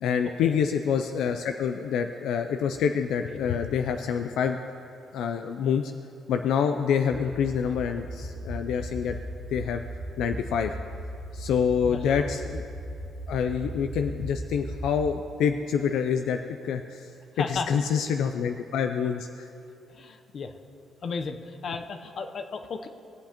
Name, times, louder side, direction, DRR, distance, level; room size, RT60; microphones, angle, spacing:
voice 1, 0.0-4.6 5.1-5.9 6.3-9.2 9.5-9.8 10.2-10.7 11.3-12.6 13.3-17.1 17.4-19.5, left 7 dB, 85° left, 6 dB, 0.4 m, -27 dB
sound 1, 7.1-15.1, right 1 dB, 25° right, 1.0 m, -37 dB
voice 2, 11.9-12.2 17.4-17.7 19.9-20.5 21.0-22.9, left 5 dB, 55° left, 7 dB, 0.7 m, -34 dB
18.5 x 8.0 x 2.9 m, 2.7 s
cardioid pair, 90°, 0 cm